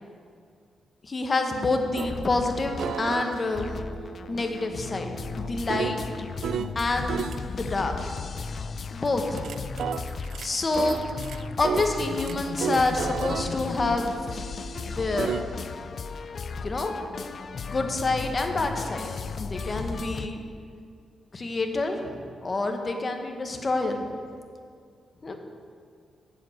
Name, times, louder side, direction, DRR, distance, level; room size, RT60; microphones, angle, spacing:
voice 1, 1.0-3.7 4.3-6.0 6.7-8.0 8.9-9.5 10.4-11.0 11.6-14.4 14.9-15.4 16.6-16.9 17.6-20.4 21.3-24.1 25.2-25.4, left 2 dB, 35° left, 4 dB, 1.3 m, -27 dB
sound 1, 2.0-20.3, left 5 dB, 55° left, 0.4 m, -36 dB
sound 2, 2.0-2.1 2.8-6.8 7.1-7.4 9.1-15.4, right 7 dB, 75° right, 0.3 m, -34 dB
7.5 x 7.4 x 7.9 m, 2.2 s
cardioid pair, 75°, 0 cm